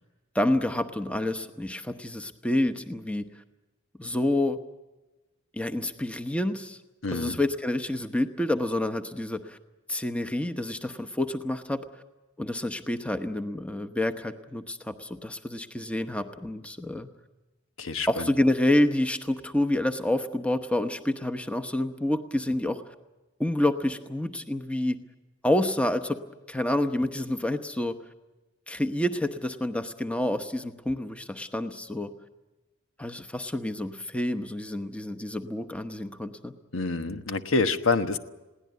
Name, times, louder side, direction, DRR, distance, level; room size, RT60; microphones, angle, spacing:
voice 1, 0.3-3.3 4.0-4.6 5.5-6.8 7.1-9.6 9.9-11.8 12.4-17.1 18.1-22.8 23.4-25.0 25.4-26.2 26.5-27.9 28.7-32.1 33.0-36.5, left 1 dB, 5° left, 8 dB, 1.0 m, -28 dB
voice 2, 7.0-7.4 17.8-18.3 36.7-38.2, left 3 dB, 80° left, 9 dB, 1.3 m, -27 dB
21.5 x 17.5 x 9.5 m, 1.1 s
head